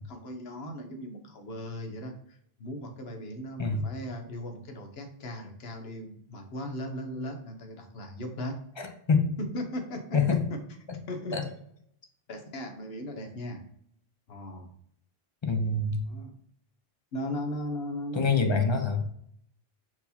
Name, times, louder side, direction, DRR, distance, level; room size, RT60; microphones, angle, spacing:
voice 1, 0.1-8.5 9.4-10.1 11.1-11.4 12.3-13.6 14.3-14.7 16.1-16.3 17.1-18.6, left 1 dB, 75° left, 4 dB, 1.1 m, -37 dB
voice 2, 8.8-9.3 10.1-10.5 11.3-11.4 15.4-16.0 18.1-19.0, left 4 dB, 35° left, 5 dB, 0.5 m, -25 dB
4.5 x 2.7 x 4.0 m, 0.70 s
omnidirectional pair, 1.0 m